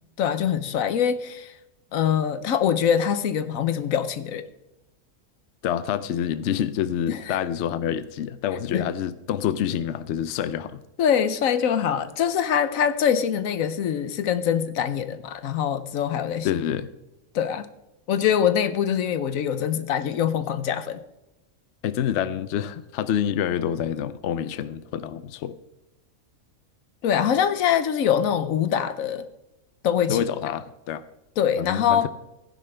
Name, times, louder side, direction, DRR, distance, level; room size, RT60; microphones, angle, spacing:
voice 1, 0.2-1.5 1.9-4.5 7.1-7.4 8.7-8.9 11.0-16.5 17.3-17.7 18.1-21.0 27.0-29.3 29.8-30.2 31.4-32.1, left 8 dB, 85° left, 1.2 m, -23 dB
voice 2, 5.6-10.8 16.4-16.9 21.8-25.6 30.1-31.0 31.6-32.1, left 9 dB, 70° left, 0.8 m, -27 dB
15.5 x 10.0 x 3.3 m
omnidirectional pair, 1.4 m